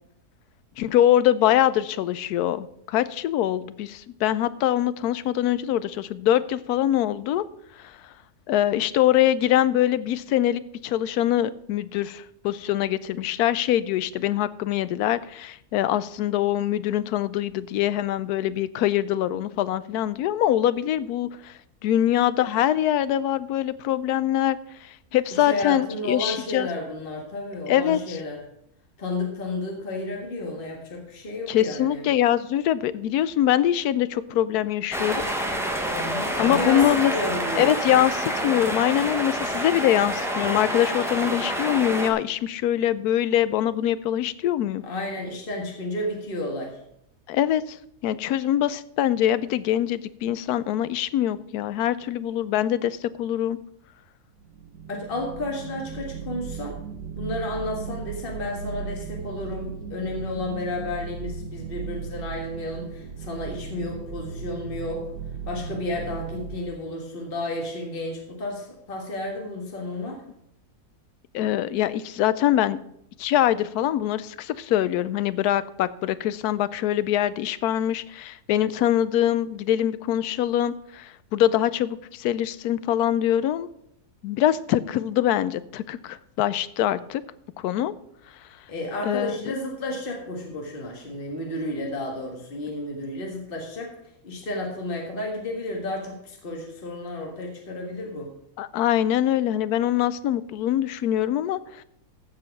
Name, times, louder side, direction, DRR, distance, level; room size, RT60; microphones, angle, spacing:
voice 1, 0.8-7.4 7.8-8.0 8.5-21.5 21.8-26.7 27.7-28.2 31.5-35.2 36.4-37.1 37.6-44.8 47.3-47.8 48.0-53.6 71.3-72.8 73.2-83.7 84.2-87.2 87.6-87.9 89.0-89.5 98.6-101.8, left 12 dB, 80° left, 16 dB, 1.1 m, -23 dB
voice 2, 25.3-28.4 29.0-32.1 35.9-37.7 44.8-46.8 54.9-56.8 57.2-65.1 65.5-70.2 88.7-93.9 94.2-98.3, left 2 dB, 35° left, 0 dB, 1.9 m, -32 dB
sound 1, 34.9-42.1, equal, ahead, 1.1 m, -28 dB
sound 2, 54.4-66.6, right 6 dB, 80° right, 1.3 m, -36 dB
14.5 x 4.9 x 5.8 m, 0.74 s
omnidirectional pair, 1.7 m